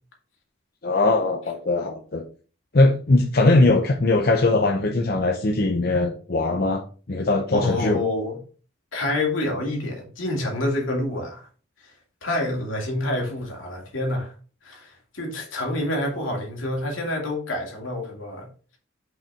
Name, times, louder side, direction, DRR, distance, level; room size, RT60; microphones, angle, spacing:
voice 1, 0.8-2.2 2.7-6.8 7.1-8.0, left 2 dB, 50° left, 0.7 m, -20 dB
voice 2, 7.5-8.4 8.9-11.5 11.8-11.9 12.2-14.3 14.6-18.5, left 1 dB, 75° left, 2.4 m, -27 dB
5.8 x 5.5 x 3.5 m
head